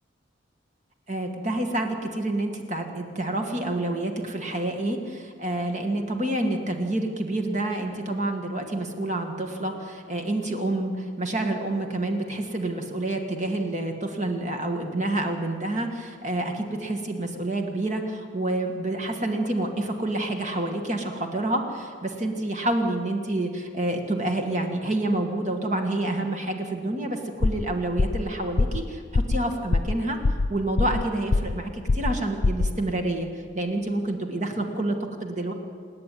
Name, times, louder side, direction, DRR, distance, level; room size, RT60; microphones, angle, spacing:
voice 1, 1.1-30.2 30.5-33.3 33.5-35.0 35.2-35.5, right 1 dB, 35° right, 3 dB, 1.9 m, -28 dB
sound 1, 27.4-27.7 28.0-28.3 28.6-28.8 29.1-29.4 29.7-30.0 30.2-31.0 31.3-31.6 31.9-32.2 32.4-32.7, left 3 dB, 70° left, 0.5 m, -22 dB
28.5 x 10.0 x 9.4 m, 2.1 s
head